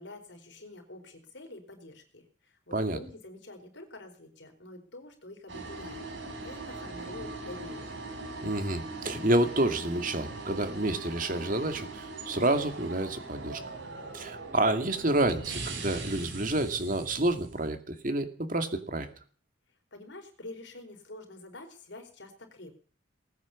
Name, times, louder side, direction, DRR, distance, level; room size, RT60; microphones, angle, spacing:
voice 1, 0.0-8.0 19.9-22.7, left 2 dB, 70° left, 5 dB, 4.5 m, -47 dB
sound 1, 5.5-17.7, right 2 dB, 75° right, 4.7 m, -41 dB
voice 2, 8.4-13.6 14.1-19.1, right 1 dB, 45° right, 8 dB, 2.3 m, -29 dB
20.0 x 9.5 x 7.2 m, 0.43 s
head